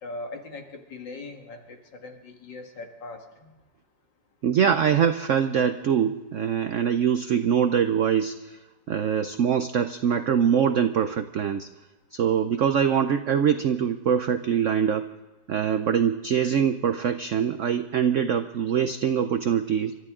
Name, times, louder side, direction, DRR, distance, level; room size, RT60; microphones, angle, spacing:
voice 1, 0.0-3.5 4.8-5.0, left 2 dB, 70° left, 3 dB, 2.5 m, -40 dB
voice 2, 4.4-8.6 8.9-11.7 12.1-15.1 15.5-20.0, right 8 dB, 75° right, 9 dB, 0.7 m, -23 dB
28.5 x 13.0 x 3.7 m, 1.2 s
omnidirectional pair, 2.0 m